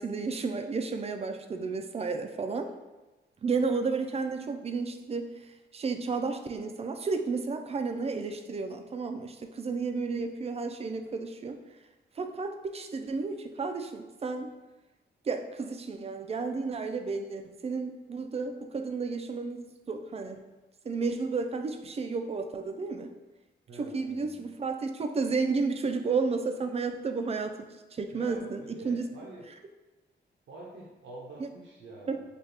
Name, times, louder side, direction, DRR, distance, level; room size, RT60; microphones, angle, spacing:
voice 1, 0.0-2.7 3.4-5.3 5.7-11.6 12.2-14.5 15.3-20.4 20.9-23.1 23.8-27.7 27.9-29.1 31.4-31.5 32.1-32.2, right 4 dB, 35° right, 6 dB, 0.3 m, -32 dB
voice 2, 23.7-24.5 28.1-29.5 30.5-32.2, right 2 dB, 90° right, -4 dB, 0.7 m, -47 dB
4.2 x 2.4 x 3.3 m, 1.1 s
cardioid pair, 90°, 19 cm